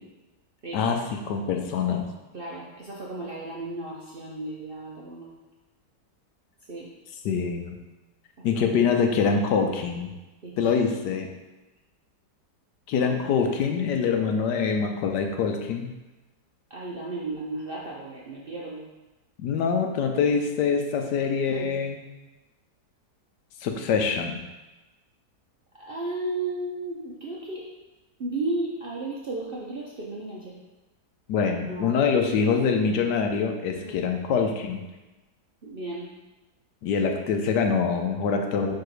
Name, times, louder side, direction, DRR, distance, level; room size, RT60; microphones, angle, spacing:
voice 1, 1.3-2.0 7.2-7.8 8.4-10.1 10.6-11.3 12.9-15.9 19.4-22.0 23.6-24.4 31.3-34.8 36.8-38.7, left 5 dB, 75° left, 4 dB, 1.3 m, -24 dB
voice 2, 2.3-5.3 6.7-6.9 8.4-8.9 10.4-10.6 12.9-13.1 16.7-18.8 21.5-21.7 25.7-27.7 28.2-30.6 31.7-31.9 33.8-34.0 35.6-36.1, right 2 dB, 50° right, -5 dB, 0.7 m, -34 dB
4.6 x 4.2 x 4.8 m, 1.1 s
omnidirectional pair, 1.8 m